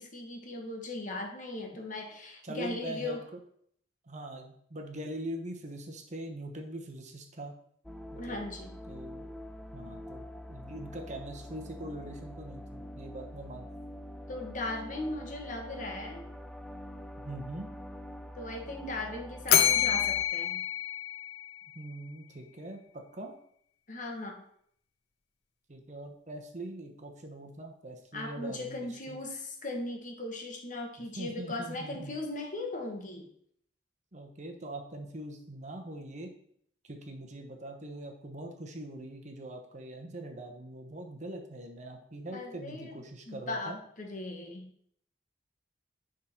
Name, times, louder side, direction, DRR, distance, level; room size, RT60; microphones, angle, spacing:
voice 1, 0.0-3.2 8.2-8.8 14.3-16.2 18.4-20.6 23.9-24.4 28.1-33.2 42.3-44.7, left 2 dB, 45° left, 2 dB, 1.3 m, -38 dB
voice 2, 2.4-3.2 4.1-7.5 8.1-8.4 8.9-9.3 9.7-13.7 17.2-17.7 21.7-23.3 25.7-29.2 31.0-32.2 34.1-36.3 36.8-43.8, right 1 dB, 40° right, 3 dB, 1.0 m, -42 dB
sound 1, 7.8-20.3, equal, 5° left, 0.4 m, -45 dB
Bell, 19.5-21.8, left 10 dB, 60° left, 0.7 m, -27 dB
10.0 x 3.8 x 4.4 m, 0.66 s
head